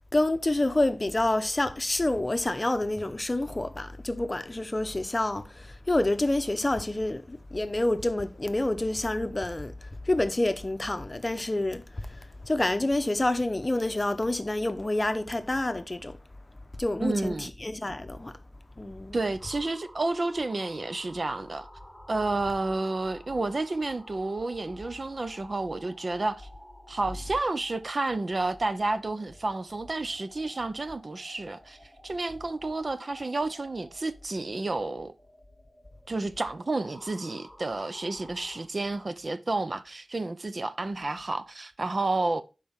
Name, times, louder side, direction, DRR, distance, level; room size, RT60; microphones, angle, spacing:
voice 1, 0.1-16.2 16.8-18.4 18.8-19.2, left 2 dB, 30° left, 0.9 m, -28 dB
voice 2, 17.0-17.5 19.1-21.7 22.1-26.5 26.9-31.8 32.0-35.1 36.1-42.4, right 2 dB, 50° right, 0.6 m, -30 dB
sound 1, 19.4-38.6, equal, 5° right, 3.2 m, -52 dB
11.5 x 5.0 x 3.6 m
wide cardioid pair, 80°, 0 cm